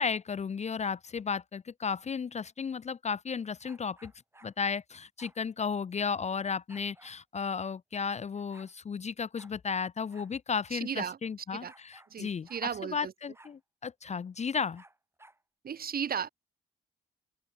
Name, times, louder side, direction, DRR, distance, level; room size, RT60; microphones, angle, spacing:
voice 1, 0.0-4.1 4.4-12.5 12.9-14.8, left 6 dB, 40° left, 0.7 m, -34 dB
sound 1, 3.6-4.5 5.2-5.4 6.7-7.2 8.0-8.1 8.3-8.7 9.3-9.5 10.1-10.3 10.6-10.7 11.6-12.1 12.5-12.7 13.3-13.6 14.7-15.4, right 1 dB, 15° right, 3.1 m, -57 dB
voice 2, 10.7-11.2 11.5-11.7 12.1-13.1 15.6-16.3, right 7 dB, 55° right, 1.9 m, -35 dB
open air
supercardioid pair, 50°, 19 cm